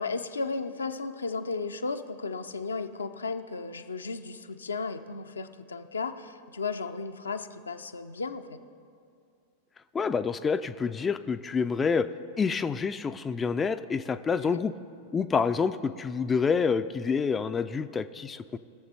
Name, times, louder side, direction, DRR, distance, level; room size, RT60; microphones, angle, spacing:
voice 1, 0.0-8.6 14.4-14.6, left 4 dB, 75° left, 7 dB, 0.5 m, -34 dB
voice 2, 9.9-12.1 12.4-14.7 15.1-18.6, left 5 dB, 20° left, 10 dB, 0.3 m, -27 dB
21.0 x 7.1 x 3.4 m, 2.4 s
figure-of-eight pair, 90°, 0 cm